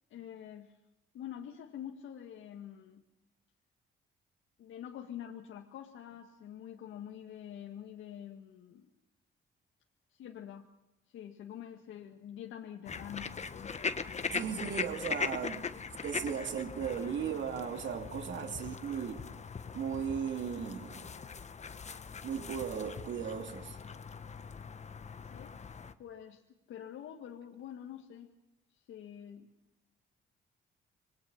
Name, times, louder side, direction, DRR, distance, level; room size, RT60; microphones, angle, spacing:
voice 1, 0.1-0.7 1.1-3.0 4.6-8.9 10.1-10.7 11.1-14.3 18.4-18.6 25.3-25.6 26.0-28.3 28.7-29.5, left 10 dB, 80° left, 1.9 m, -46 dB
sound 1, 12.8-25.9, left 5 dB, 35° left, 1.4 m, -41 dB
voice 2, 14.3-15.7 16.0-19.3 19.7-21.1 22.2-23.8, right 7 dB, 70° right, 2.8 m, -36 dB
27.0 x 21.5 x 5.8 m
cardioid pair, 90°, 20 cm